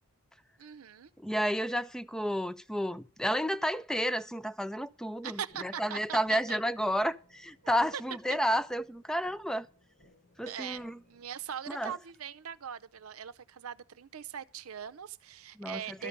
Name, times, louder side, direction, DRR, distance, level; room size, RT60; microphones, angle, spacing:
voice 1, 0.6-1.1 5.2-6.6 7.9-8.0 8.3-8.4 10.5-10.8 11.1-16.1, right 8 dB, 80° right, 0.6 m, -41 dB
voice 2, 1.2-9.7 10.4-11.0 11.7-11.9 15.6-16.1, equal, 5° left, 0.4 m, -31 dB
sound 1, 5.5-11.5, left 1 dB, 55° left, 5.6 m, -65 dB
12.5 x 5.2 x 8.6 m
head